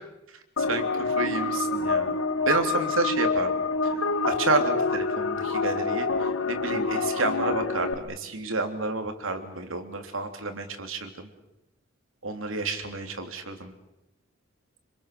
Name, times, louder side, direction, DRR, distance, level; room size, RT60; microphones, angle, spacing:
sound 1, 0.6-7.9, left 4 dB, 80° left, 1.8 m, -27 dB
voice 1, 0.6-2.2 2.5-3.5 3.8-3.9 4.2-11.3 12.2-13.7, right 3 dB, 75° right, 6 dB, 3.3 m, -30 dB
27.5 x 26.5 x 7.0 m, 0.90 s
head